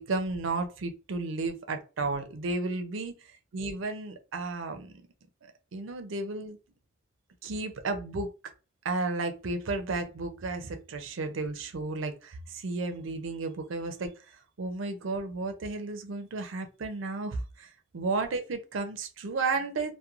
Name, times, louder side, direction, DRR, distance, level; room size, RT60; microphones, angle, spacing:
voice 1, 0.0-3.1 3.5-5.0 5.7-6.6 7.4-8.3 8.8-14.1 14.6-17.7 17.9-19.9, right 3 dB, 85° right, 0.5 m, -33 dB
3.0 x 2.1 x 2.4 m
head